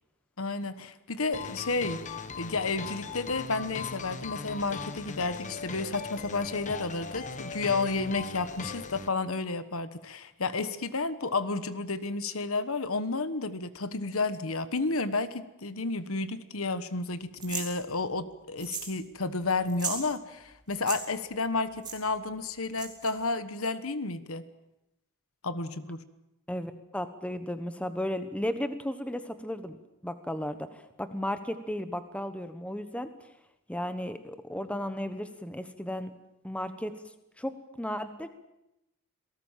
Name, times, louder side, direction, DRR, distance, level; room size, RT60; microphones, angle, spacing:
voice 1, 0.4-24.5 25.4-26.0, left 3 dB, 70° left, 12 dB, 1.3 m, -31 dB
sound 1, 1.3-9.1, left 4 dB, 35° left, 1.2 m, -39 dB
sound 2, 17.4-17.7 18.6-19.0 19.2-19.3 19.7-20.0 20.7-21.0 21.8-22.0 22.7-23.1, right 6 dB, 20° right, 4.2 m, -35 dB
voice 2, 26.5-29.8 30.0-33.1 33.7-36.1 36.4-36.9 37.4-38.3, left 1 dB, 5° left, 10 dB, 1.2 m, -34 dB
27.5 x 18.5 x 7.5 m, 0.89 s
head